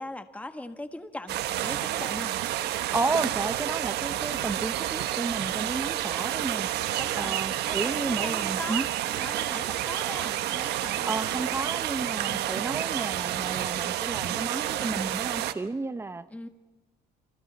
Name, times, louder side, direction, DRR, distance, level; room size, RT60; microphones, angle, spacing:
voice 1, 0.0-2.3 7.0-7.4 7.6-11.6 12.2-12.5 16.3-16.5, left 2 dB, 10° left, 8 dB, 1.5 m, -40 dB
sound 1, 1.3-15.5, right 13 dB, 80° right, 1.1 m, -30 dB
voice 2, 2.9-6.7 7.2-8.9 11.1-16.2, right 3 dB, 15° right, 13 dB, 0.9 m, -32 dB
28.5 x 27.0 x 4.2 m, 1.2 s
cardioid pair, 110°, 17 cm